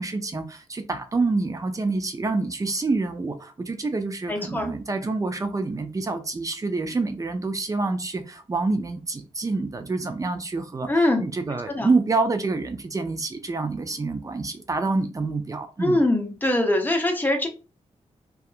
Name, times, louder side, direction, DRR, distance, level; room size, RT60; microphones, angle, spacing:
voice 1, 0.0-16.0, right 3 dB, 30° right, 0.4 m, -27 dB
voice 2, 4.3-4.7 10.9-11.2 11.7-11.9 15.8-17.5, left 1 dB, 15° left, 0.7 m, -22 dB
2.7 x 2.3 x 2.4 m
cardioid pair, 85°, 12 cm